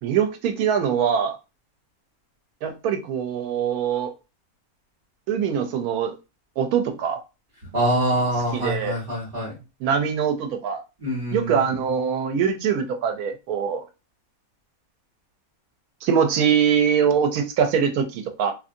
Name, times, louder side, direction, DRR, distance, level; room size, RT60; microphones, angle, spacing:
voice 1, 0.0-1.4 2.6-4.1 5.3-6.1 6.6-7.2 8.5-8.9 9.8-10.8 11.3-13.8 16.0-18.5, right 7 dB, 85° right, 6 dB, 1.1 m, -23 dB
voice 2, 7.7-9.5 11.0-11.7, right 1 dB, 35° right, -8 dB, 1.4 m, -25 dB
2.7 x 2.6 x 2.5 m, 0.29 s
omnidirectional pair, 1.5 m